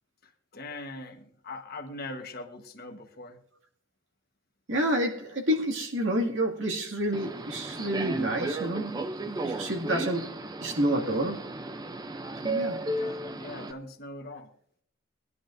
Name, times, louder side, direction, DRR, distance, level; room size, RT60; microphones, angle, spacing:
voice 1, 0.2-3.4 13.0-14.5, left 2 dB, 50° left, 6 dB, 1.2 m, -41 dB
voice 2, 4.7-9.0 9.4-11.5 12.4-12.8, right 1 dB, 70° right, 0 dB, 2.2 m, -29 dB
Subway metro underground, 7.1-13.7, right 2 dB, 20° right, 0.5 m, -34 dB
20.0 x 11.0 x 2.6 m, 0.63 s
head